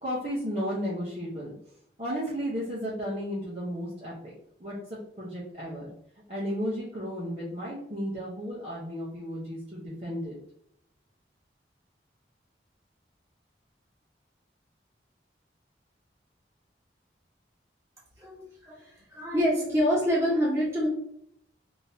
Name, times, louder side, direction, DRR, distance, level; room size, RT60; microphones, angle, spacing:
voice 1, 0.0-1.5 2.0-4.3 4.6-5.9 6.3-10.4, equal, 35° right, -7 dB, 0.8 m, -34 dB
voice 2, 18.2-20.9, equal, 15° right, -6 dB, 1.4 m, -26 dB
3.4 x 2.7 x 2.7 m, 0.71 s
head